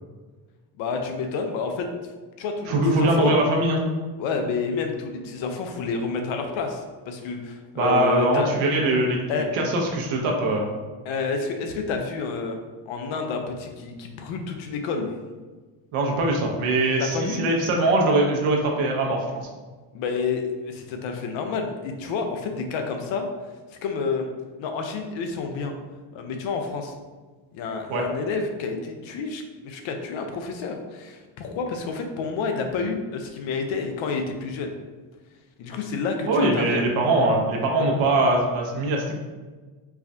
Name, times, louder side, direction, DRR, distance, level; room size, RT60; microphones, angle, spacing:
voice 1, 0.8-1.9 2.4-3.3 4.2-8.5 9.3-9.5 11.0-12.6 12.9-15.1 17.0-17.4 19.9-23.3 23.8-24.3 24.6-25.7 26.1-26.9 27.5-34.7 35.6-36.8, left 4 dB, 70° left, 5 dB, 0.7 m, -29 dB
voice 2, 2.7-3.8 7.8-9.2 9.5-10.7 15.9-19.3 27.9-28.0 36.3-39.2, right 2 dB, 75° right, 0 dB, 0.9 m, -22 dB
4.6 x 2.2 x 2.6 m, 1.3 s
cardioid pair, 105°, 48 cm